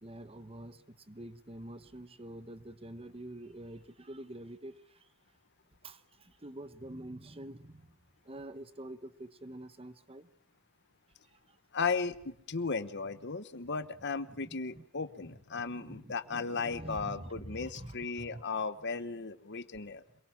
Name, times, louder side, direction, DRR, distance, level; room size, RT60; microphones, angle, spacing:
voice 1, 0.0-5.1 5.8-7.9 8.2-10.3 11.3-11.6 14.3-14.8 15.2-18.4, right 1 dB, 25° right, 11 dB, 1.2 m, -47 dB
voice 2, 11.7-20.0, left 4 dB, 50° left, 13 dB, 1.1 m, -36 dB
27.0 x 23.0 x 6.0 m, 0.71 s
head